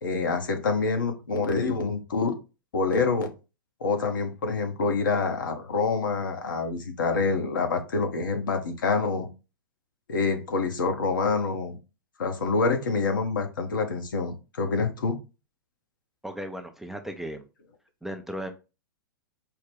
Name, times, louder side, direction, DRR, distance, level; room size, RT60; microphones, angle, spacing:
voice 1, 0.0-2.3 2.7-3.3 3.8-9.3 10.1-11.8 12.2-15.2, left 4 dB, 70° left, 5 dB, 0.9 m, -26 dB
voice 2, 16.2-17.5 18.0-18.5, equal, 5° right, 5 dB, 0.4 m, -36 dB
4.7 x 2.1 x 3.3 m, 0.29 s
figure-of-eight pair, 105°, 11 cm